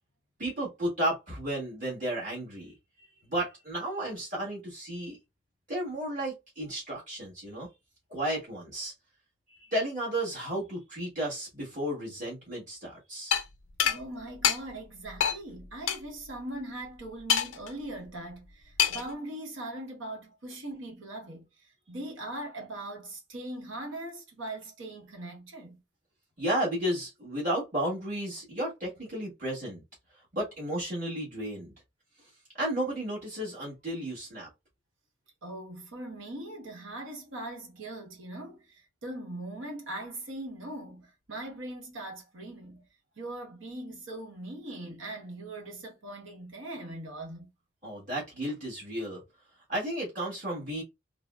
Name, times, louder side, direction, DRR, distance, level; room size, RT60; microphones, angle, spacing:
voice 1, 0.4-2.7 3.2-5.2 5.7-7.7 8.1-8.9 9.5-13.3 26.4-29.8 30.3-31.7 32.5-34.5 47.8-49.2 49.7-50.8, right 1 dB, 40° right, 1.5 m, -33 dB
sound 1, 13.3-13.4 13.8-14.0 14.4-14.6 15.2-15.4 15.9-16.0 17.3-17.7 18.8-19.1, left 8 dB, 75° left, 0.5 m, -25 dB
voice 2, 13.8-21.4 21.9-25.8 35.4-42.8 43.2-47.5, right 1 dB, 70° right, 1.0 m, -40 dB
3.8 x 2.0 x 2.3 m
head